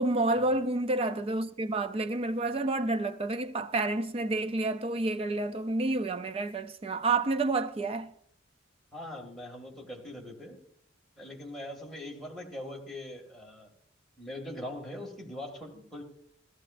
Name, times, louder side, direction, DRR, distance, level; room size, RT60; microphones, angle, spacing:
voice 1, 0.0-8.1, right 2 dB, 30° right, 0.5 m, -29 dB
voice 2, 8.9-10.6 11.2-13.7 14.2-16.0, left 1 dB, ahead, 2.2 m, -42 dB
15.5 x 14.0 x 2.5 m
head